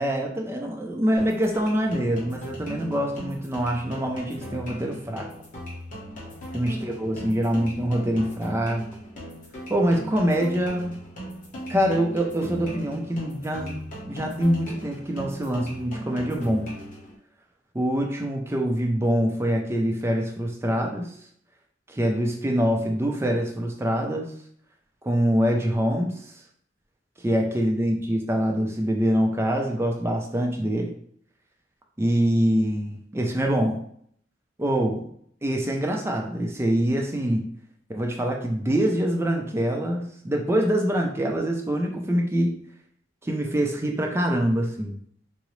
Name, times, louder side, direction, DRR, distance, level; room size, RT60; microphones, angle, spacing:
voice 1, 0.0-5.3 6.5-8.8 9.7-11.0 11.7-13.8 14.1-16.7 17.7-21.1 21.9-24.3 25.0-26.1 27.2-30.9 32.0-33.8 34.6-35.0 35.4-37.4 37.9-42.6 43.2-45.0, equal, 15° right, 1 dB, 0.5 m, -24 dB
sound 1, 1.2-17.2, equal, 45° left, 1.0 m, -38 dB
3.7 x 2.0 x 3.1 m, 0.64 s
head